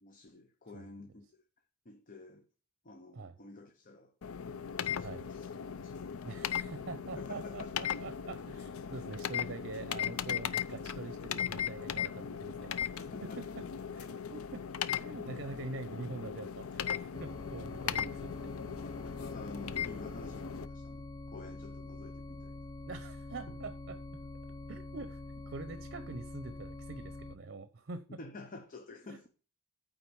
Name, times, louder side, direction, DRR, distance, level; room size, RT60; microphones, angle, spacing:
voice 1, 0.0-1.4 1.8-2.5 2.8-4.1 4.7-6.6 7.2-7.9 13.1-13.6 18.4-18.5 18.8-22.6 23.5-23.6 28.2-29.3, left 2 dB, 40° left, 0.8 m, -50 dB
voice 2, 0.7-1.1 3.1-3.4 5.0-5.3 6.2-13.6 13.9-14.6 14.9-18.3 22.9-24.0 24.7-28.2 29.1-29.2, right 3 dB, 55° right, 0.7 m, -45 dB
sound 1, 4.2-20.7, left 8 dB, 90° left, 0.5 m, -38 dB
sound 2, 17.1-27.4, left 2 dB, 15° left, 0.4 m, -45 dB
9.1 x 3.9 x 7.0 m
head